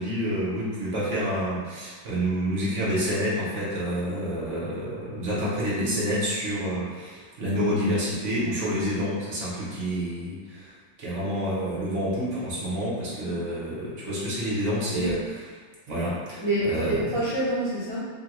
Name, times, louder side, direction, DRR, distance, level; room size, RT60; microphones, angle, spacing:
voice 1, 0.0-10.7 11.0-15.2 15.9-17.0, equal, 55° right, -7 dB, 0.9 m, -28 dB
voice 2, 16.4-18.1, right 1 dB, 40° right, -13 dB, 0.4 m, -27 dB
3.7 x 2.2 x 2.9 m, 1.5 s
omnidirectional pair, 2.1 m